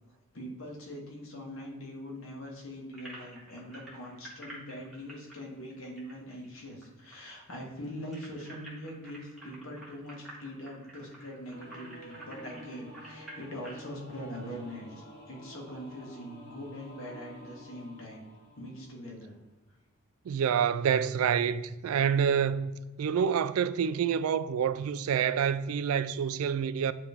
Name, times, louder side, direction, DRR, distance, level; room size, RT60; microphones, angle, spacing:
voice 1, 0.3-18.2 18.6-19.3, equal, 70° left, 1.6 m, -42 dB
sound 1, 2.9-6.9 7.1-7.2 7.5-13.9, right 1 dB, ahead, 1.6 m, -49 dB
Singing / Musical instrument, 11.5-19.3, equal, 45° left, 1.1 m, -50 dB
voice 2, 20.3-26.9, right 7 dB, 90° right, 0.3 m, -27 dB
9.1 x 3.2 x 3.5 m
head